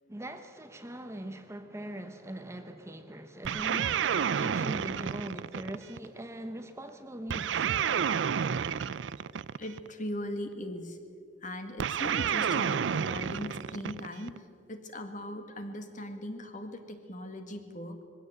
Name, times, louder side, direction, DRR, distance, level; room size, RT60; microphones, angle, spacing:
voice 1, 0.1-4.0 4.4-7.7, right 1 dB, 15° right, 0.9 m, -41 dB
sound 1, 3.4-6.1 7.3-9.9 11.8-14.4, right 7 dB, 75° right, 0.4 m, -30 dB
voice 2, 9.6-11.0 11.4-18.0, left 1 dB, 40° left, 1.8 m, -39 dB
21.0 x 16.0 x 8.0 m
head